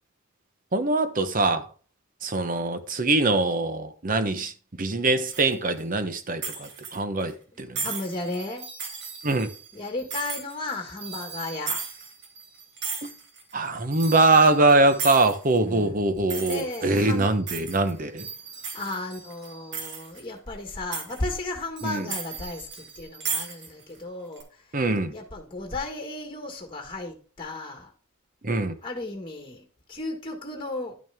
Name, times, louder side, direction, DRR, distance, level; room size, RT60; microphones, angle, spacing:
voice 1, 0.7-1.7 2.2-4.5 4.8-7.8 9.2-9.5 13.0-13.1 13.5-18.3 21.8-22.0 24.7-25.1 28.4-28.7, right 2 dB, 40° right, 0.9 m, -23 dB
sound 1, 5.3-5.8 6.2-6.3 6.4-7.3 7.6-13.5 13.9-15.6 16.3-20.2 20.9-21.4 21.8-24.0 24.4-24.5, right 6 dB, 55° right, 2.5 m, -36 dB
voice 2, 7.5-8.7 9.7-11.8 15.6-17.4 18.3-18.4 18.7-24.8 25.1-27.9 28.8-30.9, left 2 dB, 25° left, 1.7 m, -35 dB
11.0 x 6.1 x 3.5 m
head